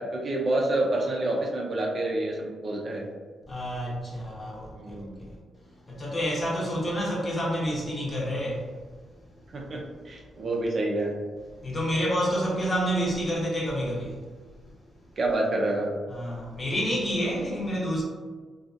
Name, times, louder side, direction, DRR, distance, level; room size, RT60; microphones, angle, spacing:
voice 1, 0.0-3.1 4.8-5.2 9.5-11.1 15.2-15.9, right 2 dB, 40° right, 0.4 m, -28 dB
voice 2, 3.5-5.4 5.9-8.8 11.6-14.2 16.1-18.0, equal, 30° left, 0.8 m, -29 dB
2.5 x 2.3 x 2.5 m
cardioid pair, 110°, 0 cm